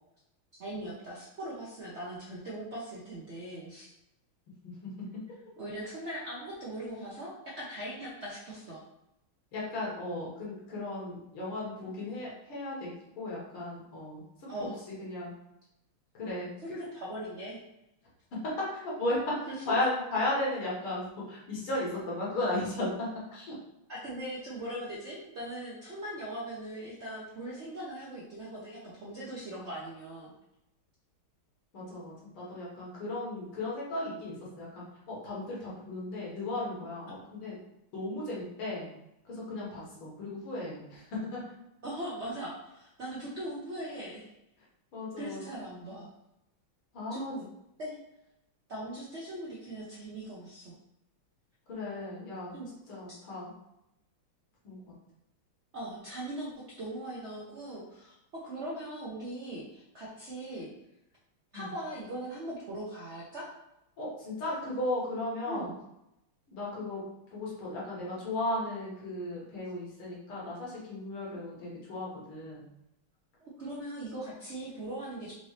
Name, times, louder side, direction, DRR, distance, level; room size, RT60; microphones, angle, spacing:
voice 1, 0.6-3.9 5.6-8.8 14.5-14.8 16.6-17.6 19.5-19.6 23.9-30.3 41.8-44.3 45.2-46.1 47.1-47.5 47.8-48.0 48.7-50.7 52.5-52.7 55.7-60.7 61.5-63.5 65.4-65.8 73.4-75.3, right 1 dB, 65° right, -5 dB, 0.6 m, -40 dB
voice 2, 4.8-5.2 9.5-14.2 14.6-14.7 15.0-15.3 16.2-16.5 18.7-23.5 31.7-37.6 37.9-38.9 39.3-41.4 44.9-45.4 46.9-47.3 51.7-52.5 52.9-53.5 54.6-54.9 61.5-61.7 64.0-65.7 66.5-67.0 67.3-72.7, left 2 dB, 85° left, -5 dB, 2.3 m, -35 dB
5.1 x 2.8 x 3.2 m, 0.86 s
omnidirectional pair, 2.3 m